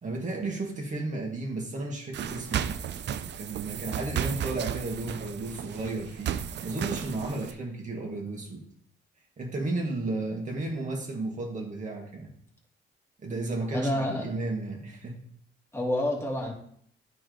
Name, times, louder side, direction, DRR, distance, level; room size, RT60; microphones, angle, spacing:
voice 1, 0.0-2.7 3.4-6.4 6.6-8.6 9.4-12.3 13.2-15.2, right 2 dB, 40° right, 0 dB, 2.1 m, -33 dB
sound 1, 2.1-7.5, right 9 dB, 60° right, 0.5 m, -34 dB
voice 2, 13.7-14.3 15.7-16.5, left 1 dB, 15° left, -2 dB, 2.2 m, -28 dB
12.0 x 3.9 x 3.4 m, 0.63 s
cardioid pair, 90°, 20 cm